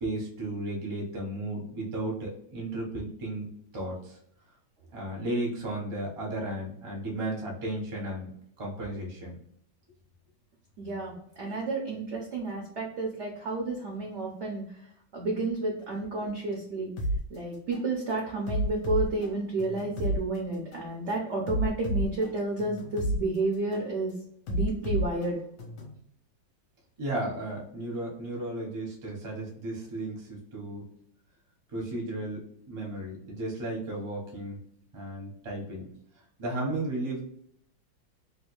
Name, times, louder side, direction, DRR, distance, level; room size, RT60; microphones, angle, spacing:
voice 1, 0.0-3.5 3.7-4.2 4.9-9.4 27.0-30.8 31.7-34.6 34.9-35.9 36.4-37.2, right 1 dB, 35° right, -2 dB, 0.5 m, -34 dB
voice 2, 10.8-14.6 15.1-16.9 17.3-24.1 24.5-25.4, right 2 dB, 75° right, -1 dB, 0.6 m, -31 dB
sound 1, 17.0-17.2 17.7-17.9 18.5-20.2 20.7-20.9 21.5-23.2 23.7-23.9 24.5-26.0, equal, 65° left, 1.2 m, -30 dB
3.2 x 2.4 x 3.0 m, 0.71 s
omnidirectional pair, 2.1 m